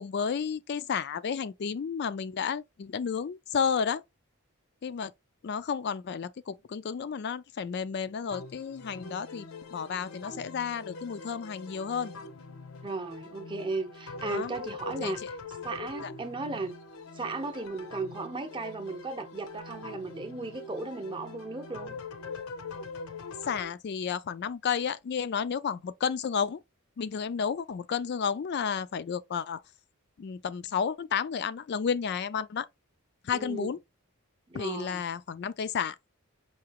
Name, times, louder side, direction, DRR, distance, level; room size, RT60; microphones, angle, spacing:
voice 1, 0.0-4.0 4.8-5.1 5.4-12.1 14.2-14.5 15.0-15.1 16.0-16.1 23.5-26.6 27.0-29.6 30.2-32.7 33.2-33.8 34.5-36.0, left 6 dB, 50° left, 0.3 m, -32 dB
sound 1, 8.3-23.7, left 3 dB, 75° left, 0.7 m, -43 dB
voice 2, 12.8-15.3 15.6-16.7 17.1-22.0 33.3-33.7 34.5-35.0, right 3 dB, 20° right, 0.7 m, -36 dB
4.7 x 2.9 x 2.9 m
head